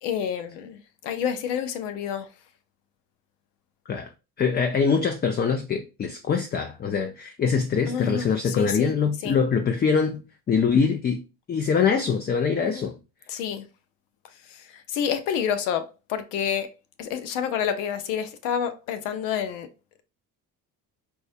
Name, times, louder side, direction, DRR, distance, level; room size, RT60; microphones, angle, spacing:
voice 1, 0.0-2.3 7.9-8.9 9.2-9.4 12.6-12.9 13.3-13.7 14.5-16.7 17.0-19.7, left 8 dB, 85° left, 0.6 m, -29 dB
voice 2, 4.4-10.2 10.5-11.2 11.5-13.0, left 6 dB, 25° left, 0.4 m, -23 dB
4.6 x 2.1 x 2.6 m
supercardioid pair, 75°, 39 cm